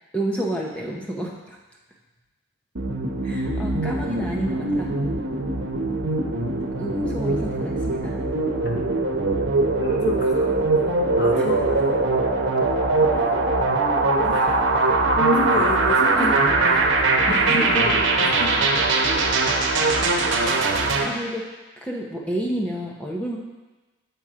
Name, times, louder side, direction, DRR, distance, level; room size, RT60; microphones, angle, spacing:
voice 1, 0.1-1.6 3.2-4.9 6.8-8.2 11.3-11.5 14.7-14.9 16.1-16.3 17.3-17.8 20.8-21.5 21.8-23.4, right 1 dB, 5° left, -2 dB, 0.8 m, -30 dB
sound 1, 2.8-21.0, right 3 dB, 80° right, 0.9 m, -21 dB
voice 2, 8.6-9.1 9.8-10.5 11.2-11.8 14.1-14.6 15.2-18.5 19.1-19.2 20.9-21.2, left 3 dB, 60° left, 0 dB, 1.2 m, -30 dB
7.1 x 5.9 x 4.9 m, 1.2 s
head